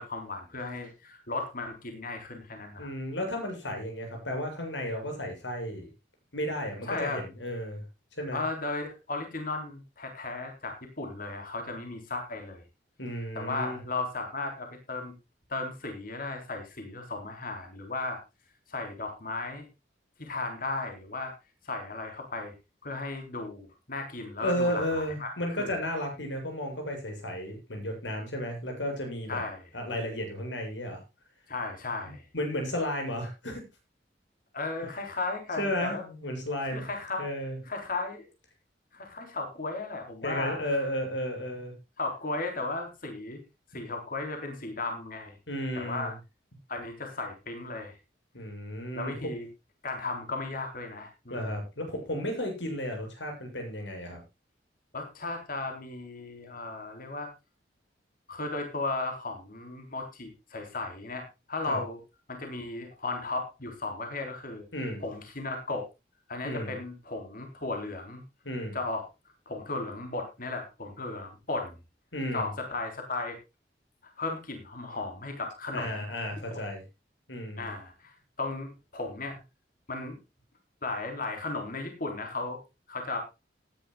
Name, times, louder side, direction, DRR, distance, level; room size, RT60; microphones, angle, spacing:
voice 1, 0.0-2.9 6.9-7.2 8.3-12.6 13.3-15.1 15.5-18.2 18.7-19.6 20.2-21.3 21.6-22.5 22.8-25.3 25.6-25.7 29.3-29.6 31.5-32.3 34.5-36.0 36.7-37.2 37.7-38.3 38.9-40.8 42.0-43.4 43.7-45.3 45.7-46.1 46.7-48.0 48.7-49.5 49.8-51.5 54.9-57.3 58.3-62.0 62.3-64.6 65.0-65.9 66.3-68.2 68.7-69.0 69.5-71.7 72.3-73.4 74.2-76.0 76.5-76.7 77.6-79.4 79.9-80.2 80.8-82.6 82.9-83.2, left 3 dB, 50° left, 4 dB, 3.9 m, -35 dB
voice 2, 2.8-5.9 6.3-7.8 8.1-8.4 13.0-13.8 24.4-29.4 29.7-31.0 32.3-33.6 35.6-36.8 37.2-37.6 40.2-41.7 45.5-46.2 48.3-49.3 51.3-54.2 61.7-61.8 64.7-65.0 66.4-66.7 68.4-68.8 72.1-72.5 75.7-76.8 77.3-77.7, equal, 85° left, 3 dB, 7.7 m, -33 dB
19.0 x 10.5 x 2.3 m, 0.26 s
head